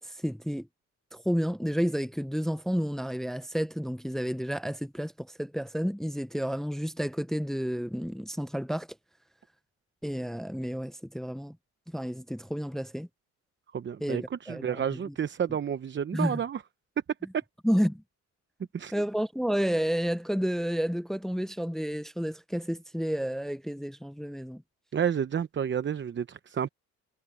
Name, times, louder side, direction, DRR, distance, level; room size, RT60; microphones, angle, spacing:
voice 1, 0.0-0.7 1.1-8.9 10.0-11.6 11.9-13.1 14.0-15.1 16.1-16.4 17.6-18.0 18.9-24.6, equal, ahead, 0.7 m, -31 dB
voice 2, 13.7-16.6 17.3-17.4 18.7-18.9 24.9-26.7, right 8 dB, 40° right, 0.9 m, -30 dB
cardioid pair, 90°, 30 cm